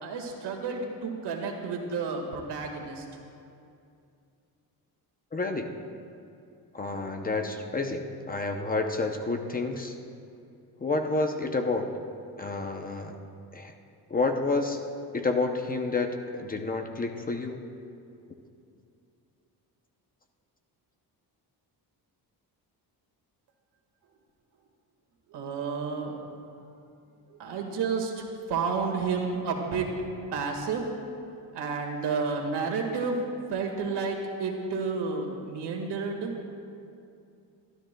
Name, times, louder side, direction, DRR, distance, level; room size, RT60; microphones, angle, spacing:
voice 1, 0.0-3.1 25.3-26.4 27.3-29.9 30.3-30.9 31.5-33.2 33.5-36.3, right 4 dB, 85° right, 2 dB, 1.7 m, -31 dB
voice 2, 5.3-5.7 6.7-10.0 10.8-11.9 12.4-13.2 13.5-13.7 14.1-14.8 15.1-17.6, left 3 dB, 20° left, 4 dB, 0.6 m, -29 dB
23.0 x 12.5 x 2.2 m, 2.6 s
cardioid pair, 155°, 40 cm